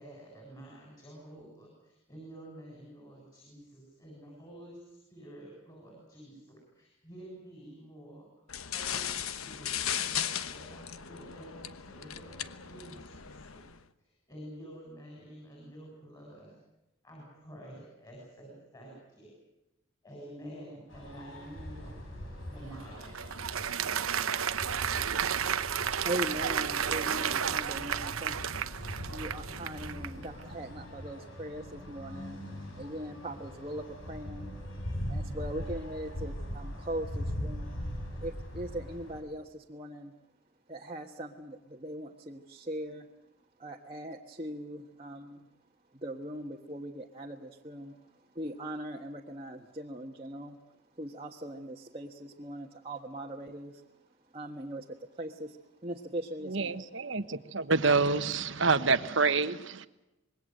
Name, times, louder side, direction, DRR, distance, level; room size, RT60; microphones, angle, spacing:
voice 1, 0.0-13.6 14.0-16.6 17.0-19.3 20.0-22.0 22.5-23.0, right 1 dB, 20° left, -1 dB, 7.6 m, -49 dB
sound 1, 8.5-13.8, left 9 dB, 90° left, 1.1 m, -37 dB
sound 2, 20.9-39.2, equal, 70° left, 6.4 m, -41 dB
Applause, 22.6-30.3, right 8 dB, 85° right, 0.9 m, -32 dB
voice 2, 25.2-28.4 29.1-32.4 32.7-34.6 35.1-37.8 38.2-40.1 40.7-43.1 43.6-45.5 45.9-50.6 50.9-53.9 54.3-56.8, right 1 dB, 25° right, -1 dB, 1.4 m, -40 dB
voice 3, 56.5-59.9, right 4 dB, 60° right, 12 dB, 1.2 m, -27 dB
26.0 x 21.5 x 7.8 m, 0.94 s
head